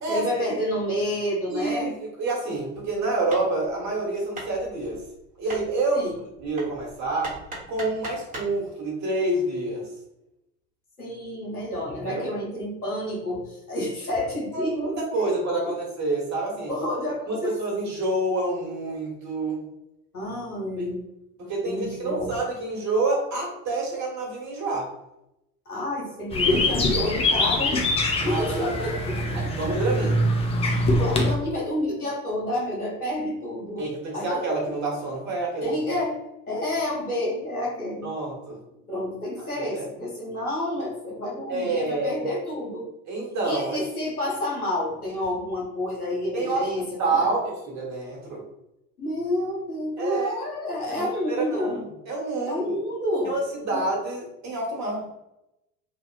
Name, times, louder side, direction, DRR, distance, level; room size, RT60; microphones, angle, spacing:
voice 1, 0.1-1.9 5.9-6.2 11.0-15.3 15.6-15.8 16.7-17.5 20.1-21.0 21.6-22.4 25.7-27.8 28.2-29.7 30.7-33.8 34.1-34.4 35.6-36.2 36.5-38.1 38.9-42.9 43.4-47.3 49.0-51.8 52.4-53.3 53.7-53.8, left 1 dB, 90° left, -5 dB, 1.1 m, -29 dB
voice 2, 1.5-5.0 5.4-6.1 6.4-7.4 7.7-9.9 11.9-12.3 14.5-16.7 17.3-19.7 20.8-20.9 21.4-24.9 27.1-27.2 28.2-28.7 29.3-30.2 33.8-35.7 38.0-38.6 39.6-39.8 41.5-42.1 43.1-43.8 46.3-46.7 47.0-48.4 50.0-50.3 50.9-51.8 52.1-52.8 53.2-55.1, right 2 dB, 40° right, -2 dB, 1.4 m, -28 dB
Hammer, 2.8-8.6, right 1 dB, 20° right, 1.2 m, -41 dB
sound 1, 26.3-31.3, left 1 dB, 15° left, 0.4 m, -23 dB
3.0 x 2.3 x 2.3 m, 0.88 s
figure-of-eight pair, 70°, 43 cm